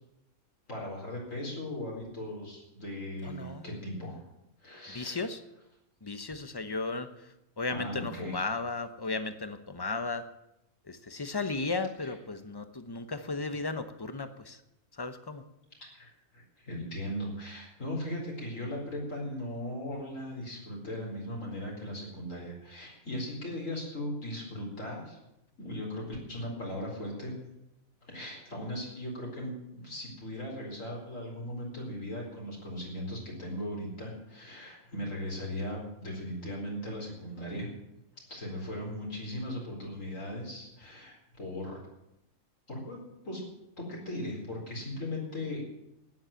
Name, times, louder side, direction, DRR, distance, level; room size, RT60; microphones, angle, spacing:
voice 1, 0.7-4.2 4.6-5.2 7.7-8.4 15.9-25.2 25.6-27.4 28.1-37.7 38.3-41.8 42.7-43.0 43.2-43.4 43.8-45.6, left 1 dB, 60° left, -2 dB, 4.8 m, -38 dB
voice 2, 3.2-3.7 4.9-5.4 6.0-10.3 10.9-14.6 14.9-15.4, left 3 dB, 20° left, 10 dB, 0.8 m, -35 dB
13.0 x 9.7 x 9.0 m, 0.86 s
omnidirectional pair, 1.5 m